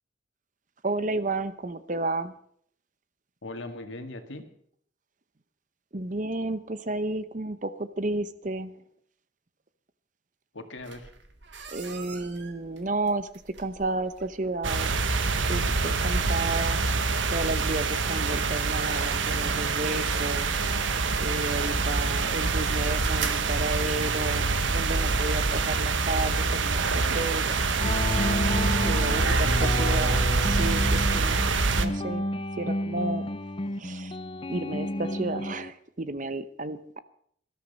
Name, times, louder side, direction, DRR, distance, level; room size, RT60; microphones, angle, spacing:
voice 1, 0.8-2.3 5.9-8.7 11.7-13.3 13.6-14.9 15.5-16.8 17.3-20.5 21.2-27.6 28.7-32.2 32.6-33.3 33.8-34.2 34.5-37.0, right 2 dB, 40° right, 13 dB, 0.9 m, -32 dB
voice 2, 3.4-4.5 10.5-11.1 28.8-29.8, left 2 dB, 85° left, 6 dB, 2.1 m, -40 dB
sound 1, 10.8-24.4, right 5 dB, 70° right, 2.1 m, -45 dB
sound 2, 14.6-31.9, right 3 dB, 85° right, 1.2 m, -25 dB
sound 3, 27.8-35.7, left 1 dB, 30° left, 0.7 m, -31 dB
19.0 x 13.0 x 5.4 m, 0.64 s
head